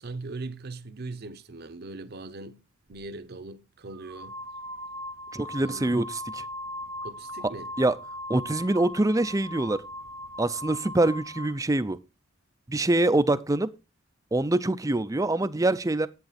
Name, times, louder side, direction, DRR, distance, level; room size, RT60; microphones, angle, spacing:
voice 1, 0.0-2.6 2.9-4.4 5.6-6.0 7.0-7.7, right 3 dB, 50° right, 0.9 m, -40 dB
sound 1, 2.9-3.1 3.9-11.6, left 1 dB, 90° right, 0.9 m, -39 dB
voice 2, 5.3-6.4 7.8-8.0 8.3-9.8 10.4-12.0 12.7-13.7 14.3-16.1, right 2 dB, 15° right, 0.5 m, -24 dB
10.5 x 8.6 x 4.1 m
head